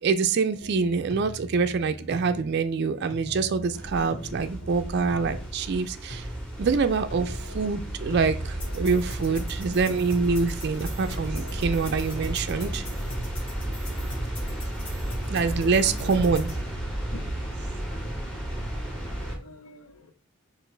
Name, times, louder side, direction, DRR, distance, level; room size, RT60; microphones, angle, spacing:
voice 1, 0.0-6.3 6.6-12.8 15.3-16.5, right 4 dB, 50° right, 0.3 m, -25 dB
sound 1, 0.6-16.6, equal, 50° left, 1.9 m, -41 dB
sound 2, 3.7-19.4, right 1 dB, 5° left, 1.0 m, -33 dB
voice 2, 15.6-16.3 17.1-17.2 19.1-20.1, left 3 dB, 70° left, 0.7 m, -44 dB
6.5 x 2.5 x 3.2 m
head